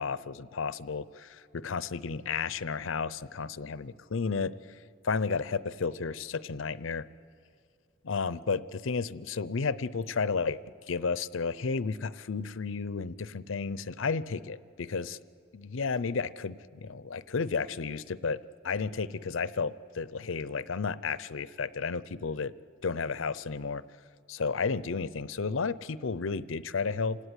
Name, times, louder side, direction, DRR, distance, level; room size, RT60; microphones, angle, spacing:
voice 1, 0.0-4.5 5.0-7.1 8.0-10.6 10.9-15.2 15.5-18.4 18.6-22.5 22.8-23.8 24.3-27.2, left 5 dB, 75° left, 17 dB, 0.6 m, -32 dB
27.5 x 17.5 x 9.8 m, 2.3 s
head